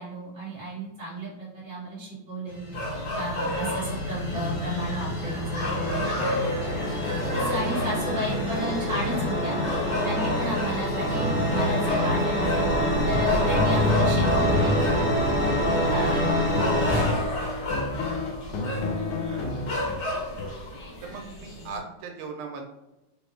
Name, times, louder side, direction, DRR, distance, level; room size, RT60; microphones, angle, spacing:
voice 1, 0.0-2.7 3.1-6.8 7.3-9.6 10.0-12.7 13.0-14.9 15.9-16.2, equal, 10° right, -7 dB, 1.1 m, -33 dB
sound 1, 2.5-17.1, left 1 dB, 45° left, 1.3 m, -26 dB
sound 2, 2.7-21.8, equal, 60° left, 1.6 m, -32 dB
sound 3, 14.1-20.5, left 2 dB, 90° left, 1.5 m, -32 dB
voice 2, 19.1-19.8 21.0-22.6, right 4 dB, 85° right, 4 dB, 1.4 m, -40 dB
3.7 x 2.1 x 3.1 m, 0.95 s
omnidirectional pair, 2.3 m